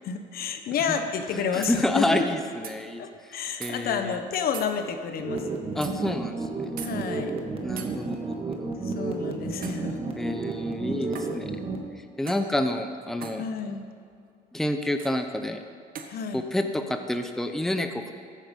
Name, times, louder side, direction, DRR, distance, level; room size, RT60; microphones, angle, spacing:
voice 1, 0.0-2.2 3.0-5.5 6.8-7.3 8.8-10.0 13.4-13.9 16.1-16.4, left 7 dB, 65° left, 7 dB, 1.2 m, -30 dB
sound 1, 1.1-1.2 1.6-1.8 2.6-2.8 3.6-3.7 4.5-4.7 5.8-5.9 6.8-6.9 7.8-7.9 9.6-9.9 11.1-11.4 12.3-12.5 13.2-13.4 15.0-15.1 15.9-16.1, right 7 dB, 55° right, 1.2 m, -39 dB
voice 2, 1.5-4.2 5.7-6.7 7.6-8.7 10.2-11.5 12.0-13.4 14.5-15.6 16.3-18.1, left 1 dB, ahead, 6 dB, 0.7 m, -29 dB
sound 2, 5.2-11.8, right 3 dB, 35° right, 1.6 m, -32 dB
14.5 x 9.0 x 5.4 m, 2.3 s
cardioid pair, 110°, 17 cm